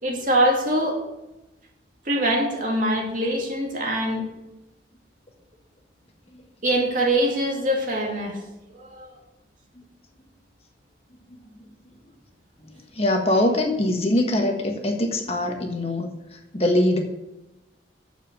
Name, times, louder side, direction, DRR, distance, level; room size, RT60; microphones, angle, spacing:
voice 1, 0.0-1.0 2.1-4.3 6.6-8.4 8.8-9.1, right 1 dB, 50° right, -1 dB, 2.6 m, -23 dB
voice 2, 12.6-17.0, left 1 dB, 35° left, 3 dB, 1.5 m, -23 dB
8.0 x 7.4 x 7.7 m, 0.95 s
head